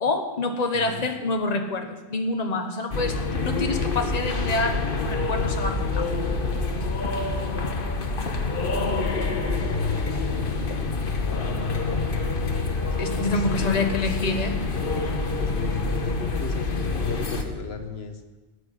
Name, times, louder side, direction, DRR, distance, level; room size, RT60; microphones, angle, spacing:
voice 1, 0.0-6.1 13.0-14.6, left 3 dB, 40° left, 5 dB, 1.3 m, -27 dB
voice 2, 0.7-1.1 11.2-12.0 13.1-14.4 15.3-18.2, left 5 dB, 80° left, 7 dB, 1.3 m, -36 dB
sound 1, 2.9-17.4, left 3 dB, 60° left, 1.4 m, -26 dB
14.5 x 6.5 x 9.9 m, 1.2 s
omnidirectional pair, 1.0 m